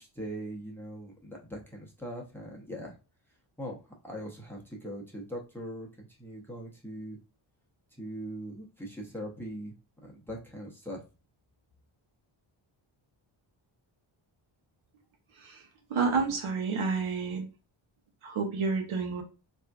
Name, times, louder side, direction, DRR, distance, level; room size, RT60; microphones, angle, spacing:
voice 1, 0.0-2.9 3.6-3.7 4.0-7.2 8.0-9.7 10.0-11.0, equal, 5° left, -1 dB, 0.7 m, -41 dB
voice 2, 15.9-17.4 18.2-19.2, right 4 dB, 75° right, 4 dB, 0.9 m, -29 dB
3.5 x 2.6 x 2.2 m, 0.31 s
wide cardioid pair, 130°, 48 cm